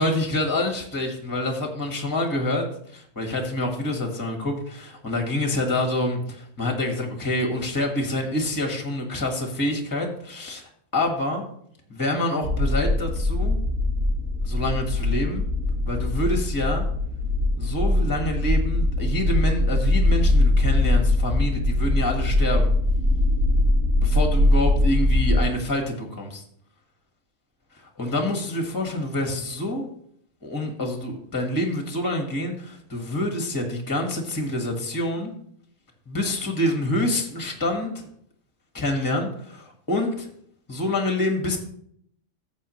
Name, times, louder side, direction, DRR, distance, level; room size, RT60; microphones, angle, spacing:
voice 1, 0.0-2.6 2.9-11.5 11.9-13.6 14.4-15.5 15.8-16.9 17.6-22.7 24.0-26.4 28.0-29.9 30.4-35.3 36.1-38.0 38.7-40.3 40.7-41.6, left 1 dB, 15° left, 3 dB, 1.5 m, -27 dB
sound 1, 12.4-25.5, left 1 dB, 75° right, 2.2 m, -21 dB
14.0 x 7.7 x 3.1 m, 0.66 s
omnidirectional pair, 1.5 m